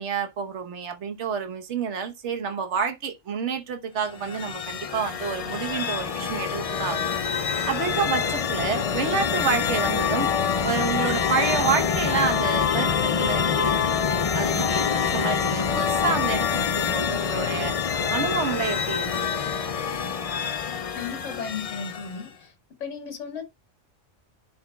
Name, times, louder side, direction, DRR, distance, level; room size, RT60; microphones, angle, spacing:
voice 1, 0.0-7.1 7.4-10.3 10.6-19.3, right 6 dB, 65° right, 1.4 m, -29 dB
sound 1, 4.1-22.3, left 7 dB, 50° left, 0.4 m, -26 dB
voice 2, 20.9-22.5 22.8-23.4, left 6 dB, 70° left, 2.0 m, -35 dB
11.0 x 4.2 x 2.3 m
omnidirectional pair, 1.3 m